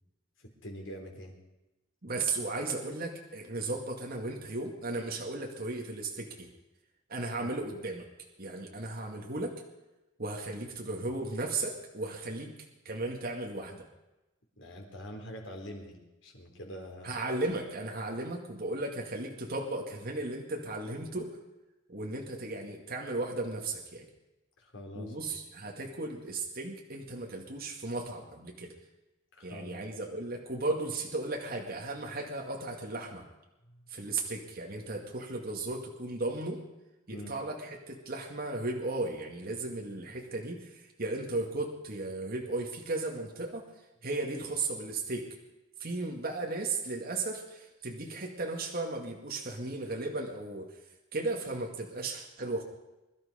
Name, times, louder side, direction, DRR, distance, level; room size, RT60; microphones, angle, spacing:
voice 1, 0.4-1.4 7.4-7.5 14.6-17.2 24.6-25.2 29.3-29.9 33.6-33.8 37.1-37.3, equal, 70° left, 1 dB, 4.0 m, -45 dB
voice 2, 2.0-6.5 7.1-8.1 8.4-9.5 10.2-12.5 12.8-13.9 17.0-21.3 21.9-24.1 24.9-28.7 29.4-33.3 33.9-36.6 37.1-43.6 44.0-45.3 45.8-50.7 51.1-52.6, right 2 dB, 50° right, 0 dB, 2.1 m, -35 dB
23.0 x 12.0 x 5.1 m, 1.0 s
head